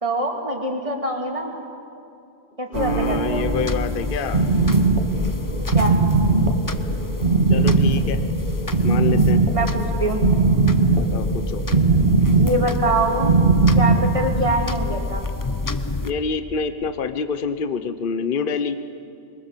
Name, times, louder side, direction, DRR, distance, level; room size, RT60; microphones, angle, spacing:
voice 1, 0.0-1.5 2.6-3.5 5.7-6.0 9.5-10.2 12.4-13.4 13.8-15.3, right 2 dB, 25° right, 1 dB, 2.6 m, -24 dB
voice 2, 2.7-4.4 7.5-8.2 8.8-9.4 11.0-11.6 16.0-18.8, left 5 dB, 50° left, 10 dB, 1.0 m, -27 dB
sound 1, 2.7-16.1, left 3 dB, 20° left, 0.6 m, -28 dB
sound 2, 2.7-8.3, right 4 dB, 65° right, 2.5 m, -33 dB
sound 3, 4.3-14.1, right 3 dB, 45° right, 1.8 m, -19 dB
26.0 x 23.5 x 7.4 m, 2.6 s
omnidirectional pair, 1.2 m